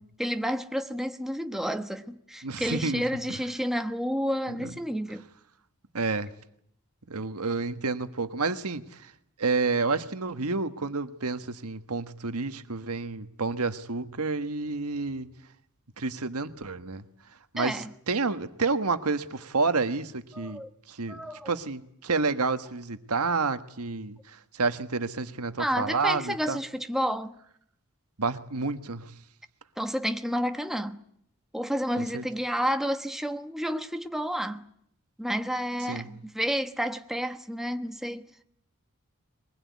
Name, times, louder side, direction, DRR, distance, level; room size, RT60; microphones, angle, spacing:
voice 1, 0.0-5.3 17.6-17.9 20.3-20.7 21.1-21.5 25.6-27.4 29.8-31.0 31.5-34.6 35.2-38.4, equal, ahead, 1.1 m, -30 dB
voice 2, 2.4-3.0 4.5-4.7 5.9-6.3 7.1-9.1 9.4-15.3 16.0-17.0 17.5-20.6 20.9-21.2 21.4-26.6 28.2-29.1 32.0-32.2 35.9-36.1, right 4 dB, 85° right, 1.5 m, -29 dB
23.0 x 20.5 x 9.6 m
head